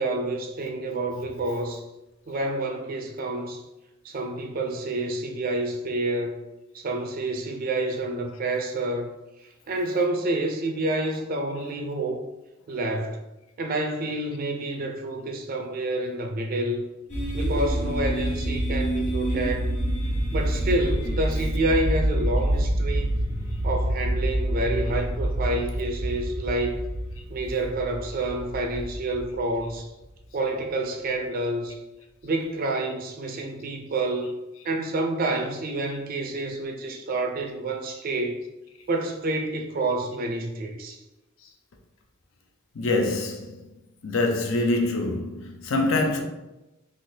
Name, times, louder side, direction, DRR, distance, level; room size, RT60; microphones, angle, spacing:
voice 1, 0.0-1.8 2.3-3.6 4.0-6.4 6.7-9.1 9.7-12.2 12.7-13.2 13.6-16.8 17.3-19.7 20.3-23.1 23.6-26.8 27.3-29.9 30.3-31.8 32.2-34.4 34.6-38.4 38.9-41.0, right 2 dB, 45° right, 0.4 m, -28 dB
sound 1, 17.1-30.0, right 1 dB, 40° left, 1.1 m, -27 dB
voice 2, 42.8-43.7 44.0-46.2, left 2 dB, 70° left, 0.5 m, -25 dB
3.3 x 2.4 x 2.7 m
head